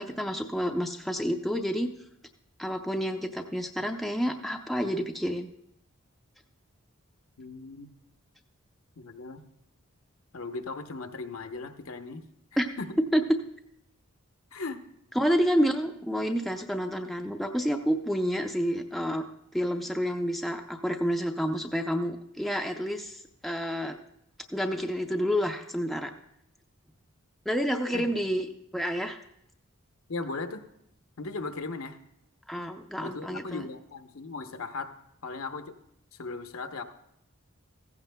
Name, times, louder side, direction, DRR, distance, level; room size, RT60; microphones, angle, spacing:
voice 1, 0.0-1.9 2.6-5.5 12.6-12.7 13.0-13.4 15.1-19.2 19.5-24.0 24.5-26.1 27.5-29.2 32.5-33.7, equal, ahead, 3 dB, 0.5 m, -29 dB
voice 2, 7.4-7.9 9.0-9.4 10.3-12.2 12.8-13.0 14.5-14.8 27.9-28.1 30.1-30.6 31.2-32.0 33.0-34.9 35.2-35.7 36.1-36.8, left 3 dB, 65° left, 7 dB, 0.8 m, -37 dB
15.5 x 14.5 x 2.2 m, 0.78 s
head